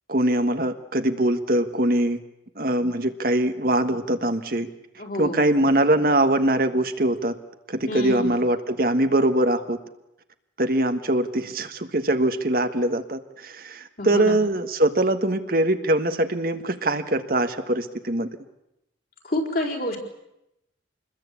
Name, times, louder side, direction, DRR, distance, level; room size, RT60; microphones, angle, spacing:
voice 1, 0.1-2.2 2.6-4.7 5.2-7.3 7.7-9.8 10.6-18.3, right 1 dB, 50° right, 8 dB, 1.5 m, -22 dB
voice 2, 5.0-5.7 7.9-8.4 14.0-14.4 19.2-20.0, left 1 dB, 50° left, 1 dB, 4.6 m, -29 dB
27.0 x 21.0 x 8.5 m, 0.86 s
head